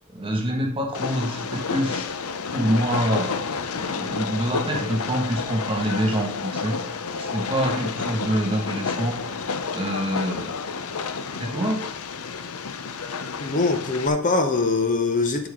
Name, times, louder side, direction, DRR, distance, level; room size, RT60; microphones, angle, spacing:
voice 1, 0.1-2.1 2.5-6.8 7.2-9.2 9.7-10.5 11.4-11.8, equal, 25° right, 3 dB, 1.7 m, -26 dB
Train, 0.9-14.1, left 5 dB, 70° left, 0.7 m, -30 dB
voice 2, 13.4-15.5, left 3 dB, 35° left, 6 dB, 0.8 m, -22 dB
11.0 x 6.0 x 3.7 m, 0.66 s
head